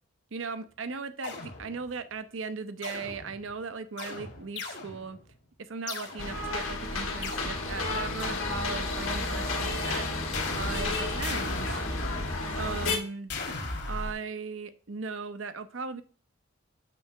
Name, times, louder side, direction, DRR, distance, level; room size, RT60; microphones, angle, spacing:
voice 1, 0.3-5.2 5.6-10.1 10.5-11.9 12.5-13.3 13.9-16.0, right 4 dB, 70° right, 11 dB, 0.7 m, -38 dB
sound 1, 1.2-2.0 2.8-3.6 4.0-5.3 5.9-6.6 7.2-9.1 10.3-12.8 13.3-14.1, left 3 dB, 55° left, 1.6 m, -38 dB
sound 2, 6.2-13.0, left 2 dB, 85° left, 2.1 m, -31 dB
8.4 x 3.4 x 6.0 m, 0.39 s
head